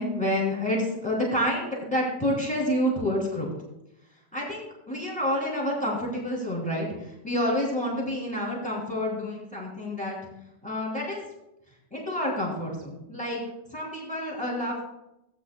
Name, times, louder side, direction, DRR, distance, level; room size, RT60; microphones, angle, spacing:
voice 1, 0.0-3.5 4.3-10.2 10.6-11.2 11.9-13.4 13.7-14.8, left 1 dB, 5° left, -4 dB, 3.3 m, -28 dB
17.0 x 9.3 x 2.3 m, 0.88 s
omnidirectional pair, 1.8 m